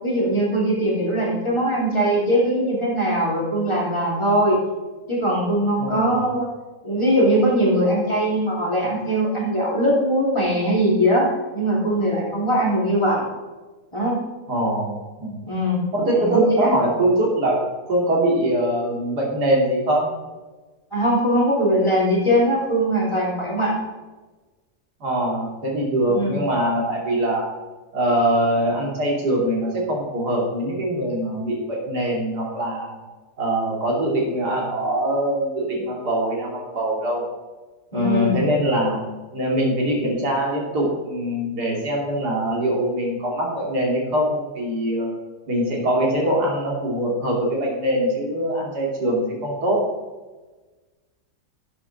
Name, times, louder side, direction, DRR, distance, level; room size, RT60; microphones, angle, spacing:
voice 1, 0.0-4.6 5.1-6.5 6.8-11.3 11.5-13.2 13.9-14.2 15.4-15.8 16.1-16.7 20.9-23.7 26.1-26.4 37.9-38.4, equal, 20° left, -5 dB, 2.9 m, -21 dB
voice 2, 5.8-6.2 14.5-15.3 15.9-17.6 17.9-20.1 25.0-27.5 27.9-33.0 33.4-37.3 37.9-39.0 39.3-45.1 45.5-49.9, right 1 dB, 85° right, -2 dB, 3.2 m, -23 dB
12.0 x 7.5 x 4.2 m, 1.2 s
omnidirectional pair, 1.7 m